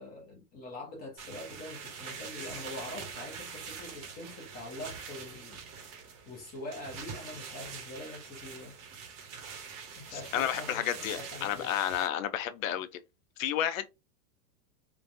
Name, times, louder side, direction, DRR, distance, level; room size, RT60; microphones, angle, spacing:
voice 1, 0.0-5.6 6.3-8.7 10.0-11.7, left 2 dB, 20° left, 0.8 m, -44 dB
sound 1, 1.2-12.1, right 6 dB, 35° right, 0.8 m, -44 dB
voice 2, 10.1-13.0 13.4-13.9, left 10 dB, 60° left, 0.6 m, -31 dB
3.3 x 2.2 x 2.6 m
supercardioid pair, 155°, 45 cm